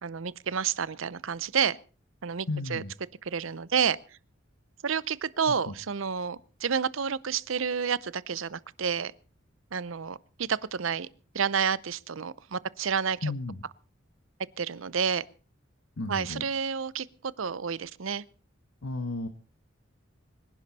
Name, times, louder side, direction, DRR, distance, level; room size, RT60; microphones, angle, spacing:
voice 1, 0.0-1.8 2.2-2.8 3.2-4.0 4.8-9.1 9.7-11.1 11.3-13.3 14.6-15.2 16.1-18.2, right 6 dB, 75° right, 0.7 m, -30 dB
voice 2, 2.5-2.9 5.7-5.8 13.2-13.6 16.0-16.4 18.8-19.3, left 2 dB, 85° left, 1.2 m, -33 dB
24.5 x 11.0 x 4.2 m
head